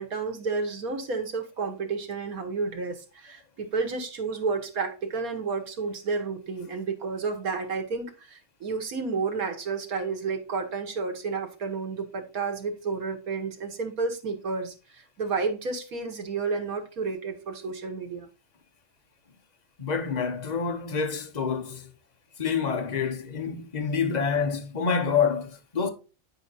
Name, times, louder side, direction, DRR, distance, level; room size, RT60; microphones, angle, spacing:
voice 1, 0.0-18.3, right 4 dB, 90° right, 1.9 m, -31 dB
voice 2, 19.8-21.9 22.4-25.9, left 6 dB, 30° left, 1.1 m, -27 dB
9.9 x 5.0 x 4.1 m
omnidirectional pair, 1.5 m